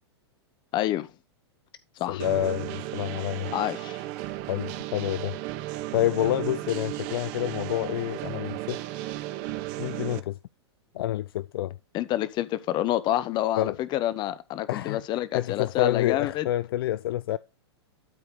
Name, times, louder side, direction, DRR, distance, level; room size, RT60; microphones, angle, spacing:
voice 1, 0.7-1.1 2.0-2.2 3.5-4.0 11.9-16.5, left 13 dB, 30° left, 0.9 m, -28 dB
voice 2, 2.1-3.5 4.5-5.4 5.9-8.8 9.8-10.4 10.9-11.8 13.6-13.8 14.7-17.4, left 14 dB, 55° left, 0.4 m, -28 dB
sound 1, 2.2-10.2, right 15 dB, 40° right, 0.8 m, -35 dB
12.5 x 4.6 x 3.9 m
figure-of-eight pair, 105°, 14 cm